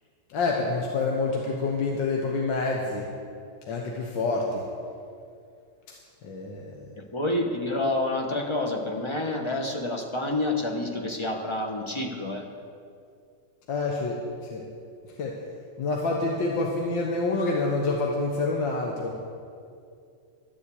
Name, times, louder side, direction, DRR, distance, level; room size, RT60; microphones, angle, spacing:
voice 1, 0.3-3.1 3.7-4.7 6.2-6.8 13.7-14.7 15.2-15.4 15.8-19.2, left 3 dB, 75° left, -1 dB, 1.8 m, -27 dB
voice 2, 7.0-12.5, left 2 dB, 25° left, 2 dB, 0.7 m, -28 dB
13.0 x 7.3 x 8.4 m, 2.4 s
omnidirectional pair, 2.1 m